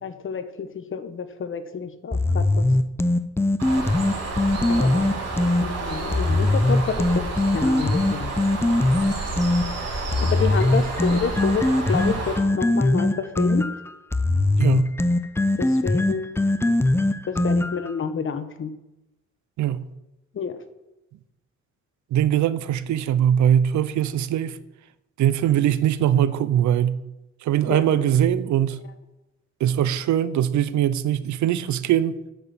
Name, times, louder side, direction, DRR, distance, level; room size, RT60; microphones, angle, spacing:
voice 1, 0.0-2.7 4.7-5.0 5.6-8.4 10.2-13.6 15.6-16.4 17.3-18.7 20.3-20.6 27.7-28.0, left 6 dB, 40° left, 1.0 m, -29 dB
sound 1, 2.1-5.7 6.1-9.7 10.1-17.9, left 2 dB, 10° left, 0.5 m, -21 dB
Bird, 3.6-12.4, right 2 dB, 55° right, 3.5 m, -30 dB
voice 2, 14.6-14.9 19.6-19.8 22.1-24.6 25.2-27.0 27.4-28.8 29.6-32.2, right 10 dB, 70° right, 0.6 m, -21 dB
8.6 x 6.1 x 7.0 m
cardioid pair, 90°, 30 cm